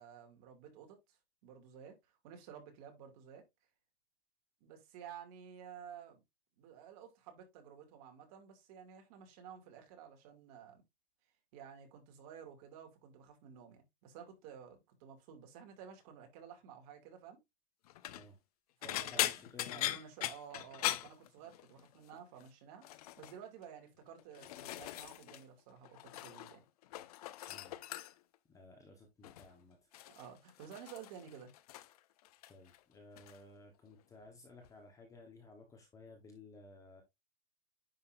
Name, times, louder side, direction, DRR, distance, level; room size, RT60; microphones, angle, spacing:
voice 1, 0.0-3.4 4.6-6.2 6.6-10.8 11.5-17.4 18.8-19.3 19.7-22.8 23.2-26.6 30.1-31.5, right 8 dB, 35° right, 2.5 m, -53 dB
sound 1, 17.9-18.3 18.8-21.9 22.1-22.5 22.8-23.4 24.0-25.4 25.7-26.6 26.8-28.4 29.2-29.5 29.9-32.0 32.3-32.8 33.2-33.4 34.6-34.7, left 14 dB, 40° left, 0.6 m, -40 dB
voice 2, 18.8-19.9 27.5-27.8 28.5-29.9 32.5-37.0, left 3 dB, 10° left, 1.1 m, -56 dB
10.0 x 5.6 x 2.6 m
supercardioid pair, 165°, 30 cm